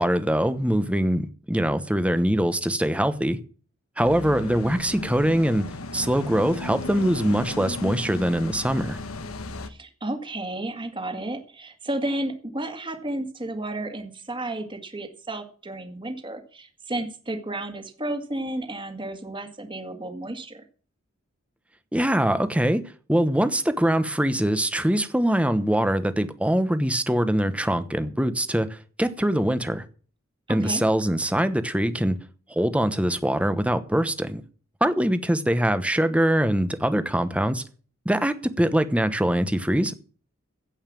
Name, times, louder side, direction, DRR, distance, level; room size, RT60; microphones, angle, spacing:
voice 1, 0.0-3.4 4.0-5.6 5.9-9.0 21.9-22.8 23.1-29.8 30.5-32.2 32.5-34.4 34.8-37.6 38.0-39.9, right 1 dB, 5° right, 1.0 m, -23 dB
sound 1, 4.0-9.7, left 2 dB, 75° left, 1.2 m, -35 dB
voice 2, 9.6-20.6 30.5-30.8, right 1 dB, 25° right, 2.1 m, -32 dB
16.0 x 5.7 x 7.5 m
head